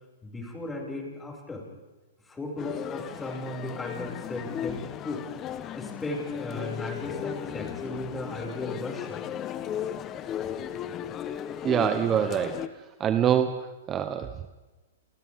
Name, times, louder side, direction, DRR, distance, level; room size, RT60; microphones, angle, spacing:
voice 1, 0.2-1.6 2.2-5.2 5.7-9.2, left 2 dB, 10° left, -1 dB, 6.2 m, -36 dB
Male speech man speaking, 2.6-12.7, left 10 dB, 25° left, 1.1 m, -36 dB
voice 2, 11.6-12.7 13.0-14.5, right 9 dB, 25° right, 9 dB, 1.0 m, -25 dB
29.0 x 28.5 x 3.7 m, 1.2 s
hypercardioid pair, 125°, 0 cm